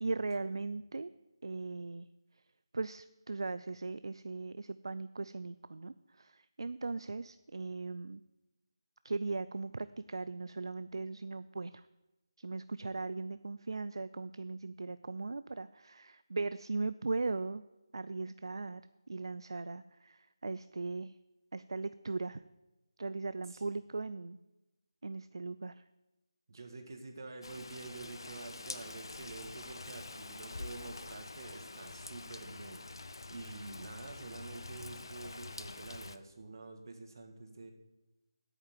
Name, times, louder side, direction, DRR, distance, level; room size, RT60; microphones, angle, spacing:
voice 1, 0.0-1.1 1.4-2.1 2.7-8.2 9.0-11.8 12.4-17.6 17.9-18.8 19.1-21.1 21.5-22.4 23.0-24.4 25.0-25.7, right 3 dB, 70° right, 14 dB, 0.4 m, -38 dB
voice 2, 26.5-32.8 33.3-37.7, right 3 dB, 50° right, 5 dB, 1.8 m, -48 dB
Rain, 27.4-36.2, left 3 dB, 65° left, 0.7 m, -46 dB
8.9 x 7.3 x 7.6 m, 1.0 s
figure-of-eight pair, 165°, 3 cm